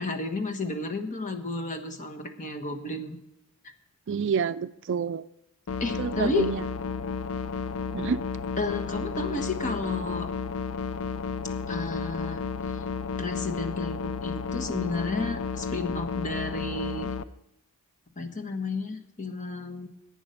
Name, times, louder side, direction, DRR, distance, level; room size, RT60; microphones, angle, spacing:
voice 1, 0.0-3.2 5.8-6.5 8.6-10.3 11.7-12.4 12.7-12.8 13.2-17.1 18.2-19.9, left 3 dB, 35° left, 6 dB, 1.3 m, -32 dB
voice 2, 4.1-5.2 6.0-6.6 7.9-8.2, right 6 dB, 55° right, 14 dB, 0.4 m, -28 dB
sound 1, 5.7-17.2, left 5 dB, 70° left, 0.6 m, -32 dB
11.0 x 8.9 x 6.5 m, 0.84 s
head